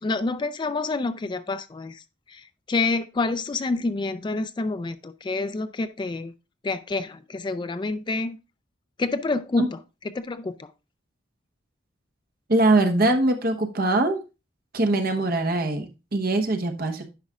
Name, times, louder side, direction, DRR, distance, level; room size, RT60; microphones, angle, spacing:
voice 1, 0.0-6.3 6.6-8.4 9.0-10.7, left 3 dB, 25° left, 12 dB, 0.3 m, -28 dB
voice 2, 12.5-14.2 14.7-17.0, right 2 dB, 50° right, 6 dB, 1.0 m, -22 dB
10.5 x 4.9 x 2.3 m, 0.28 s
head